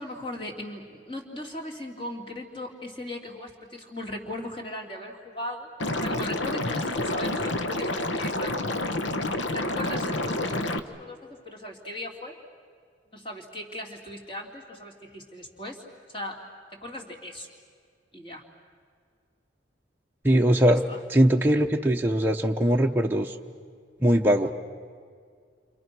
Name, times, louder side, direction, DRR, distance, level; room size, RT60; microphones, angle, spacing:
voice 1, 0.0-5.7 6.0-8.9 9.5-12.3 13.1-15.8 16.1-16.4 16.7-17.5 18.1-18.4 20.6-21.0, left 1 dB, 25° left, 0 dB, 3.1 m, -38 dB
Liquid, 5.8-10.8, left 2 dB, 80° left, 1.2 m, -28 dB
voice 2, 20.2-20.8 21.1-23.3 24.0-24.5, equal, 10° right, 0 dB, 0.8 m, -21 dB
29.5 x 26.5 x 6.2 m, 2.1 s
head